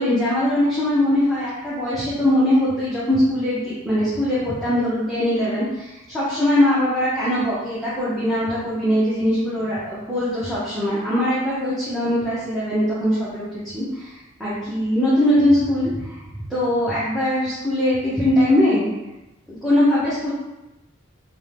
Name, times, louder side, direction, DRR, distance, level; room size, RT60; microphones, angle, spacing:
voice 1, 0.0-14.1 14.4-16.1 16.5-18.9 19.6-20.3, left 1 dB, ahead, -11 dB, 0.5 m, -21 dB
2.5 x 2.1 x 3.0 m, 0.96 s
head